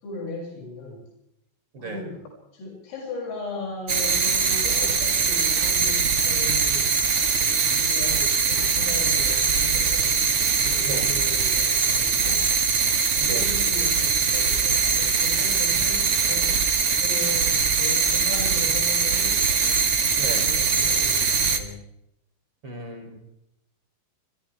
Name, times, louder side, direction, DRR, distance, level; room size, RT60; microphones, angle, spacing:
voice 1, 0.0-1.0 1.8-2.2 2.5-6.9 7.7-10.2 10.6-12.8 13.3-19.4 20.3-21.8, left 2 dB, 75° left, -2 dB, 9.8 m, -37 dB
voice 2, 1.7-2.1 10.8-11.1 13.2-13.5 20.2-20.5 22.6-23.2, right 2 dB, 25° right, 3 dB, 4.1 m, -35 dB
sound 1, 3.9-21.6, right 5 dB, 60° right, 1.3 m, -22 dB
30.0 x 24.5 x 3.6 m, 0.80 s
omnidirectional pair, 6.0 m